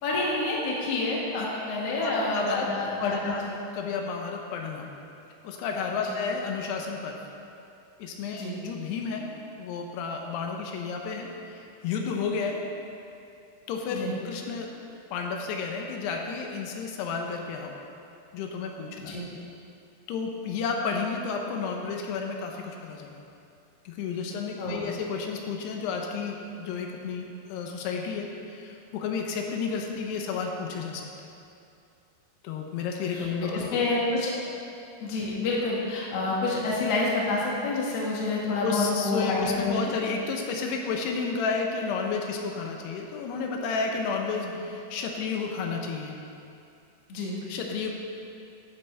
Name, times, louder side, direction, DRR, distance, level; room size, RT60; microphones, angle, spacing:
voice 1, 0.0-3.3 6.0-6.2 8.3-8.5 13.9-14.1 19.0-19.3 24.6-24.8 33.1-33.3 33.5-34.3 35.0-39.9 47.1-47.3, left 2 dB, 55° left, -4 dB, 2.0 m, -28 dB
voice 2, 2.0-2.7 3.0-3.5 3.7-4.9 5.4-7.2 8.0-9.3 9.6-12.6 13.7-14.0 14.3-14.7 15.1-17.8 18.3-19.2 20.1-23.1 23.9-31.1 32.4-33.7 38.6-46.1 47.5-47.9, left 5 dB, 80° left, 2 dB, 2.8 m, -31 dB
12.0 x 9.6 x 3.4 m, 2.6 s
omnidirectional pair, 4.8 m